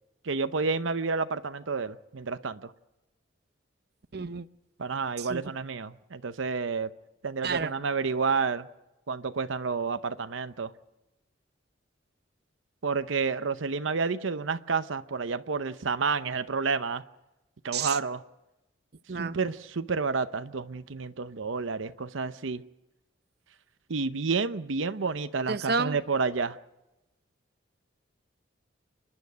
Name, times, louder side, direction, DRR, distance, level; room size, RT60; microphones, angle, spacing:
voice 1, 0.2-2.7 4.8-6.9 7.2-8.7 9.1-10.7 12.8-17.0 17.6-18.2 19.1-22.6 23.9-26.6, right 4 dB, 85° right, 11 dB, 0.8 m, -30 dB
voice 2, 4.1-4.4 5.2-5.4 7.4-7.7 17.7-18.0 19.1-19.4 25.5-26.0, right 5 dB, 55° right, 13 dB, 0.7 m, -30 dB
29.0 x 11.0 x 9.4 m, 0.96 s
head